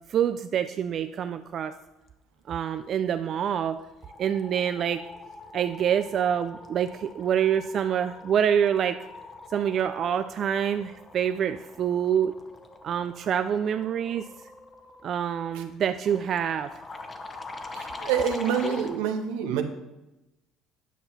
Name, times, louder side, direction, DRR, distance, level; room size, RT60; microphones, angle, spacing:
voice 1, 0.1-1.7 2.5-3.8 4.2-5.0 5.5-9.0 9.5-12.3 12.8-14.2 15.0-16.7, right 8 dB, 50° right, 9 dB, 0.4 m, -26 dB
sound 1, 3.2-3.5 3.7-19.0, left 3 dB, 25° left, 1.0 m, -44 dB
voice 2, 17.7-19.6, right 7 dB, 85° right, 6 dB, 1.0 m, -27 dB
9.4 x 5.6 x 5.7 m, 0.99 s
supercardioid pair, 85°, 0 cm